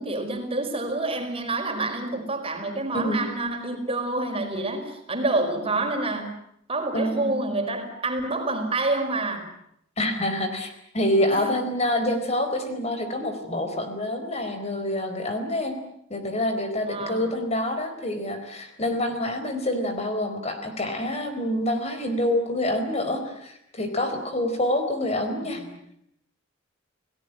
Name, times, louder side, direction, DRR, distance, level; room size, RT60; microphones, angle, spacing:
voice 1, 0.0-6.3 6.7-9.5 11.3-11.6 16.9-17.3 25.6-25.8, right 2 dB, 30° right, 5 dB, 5.1 m, -28 dB
voice 2, 6.9-7.3 10.0-15.8 16.1-25.6, left 1 dB, 35° left, 7 dB, 4.4 m, -27 dB
29.5 x 18.5 x 8.9 m, 0.73 s
head